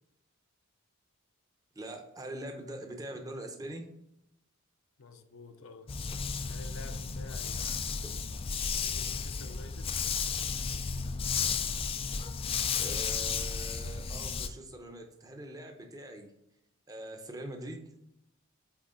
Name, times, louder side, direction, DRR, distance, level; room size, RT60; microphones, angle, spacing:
voice 1, 1.7-3.9 8.0-8.2 12.7-16.3 16.9-17.9, right 1 dB, 15° right, 0.8 m, -43 dB
voice 2, 5.0-5.9 6.4-7.6 8.8-10.0, left 4 dB, 65° left, 0.7 m, -50 dB
Dog, 5.9-14.5, left 6 dB, 25° left, 0.3 m, -33 dB
8.2 x 3.6 x 3.7 m
head